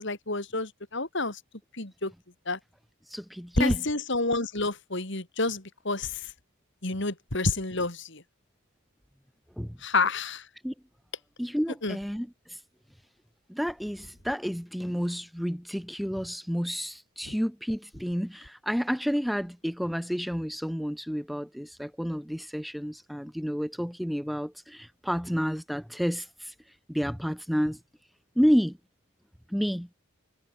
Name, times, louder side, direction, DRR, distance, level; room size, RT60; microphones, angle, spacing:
voice 1, 0.0-1.4 1.8-2.1 2.5-2.6 3.6-6.3 6.8-8.2 9.8-10.5 11.8-12.0 17.3-17.4, left 3 dB, 55° left, 3.4 m, -29 dB
voice 2, 3.1-3.8 9.6-9.7 10.6-10.7 11.4-12.6 13.5-26.5 26.9-27.8 28.4-28.8 29.5-29.9, equal, ahead, 0.6 m, -30 dB
head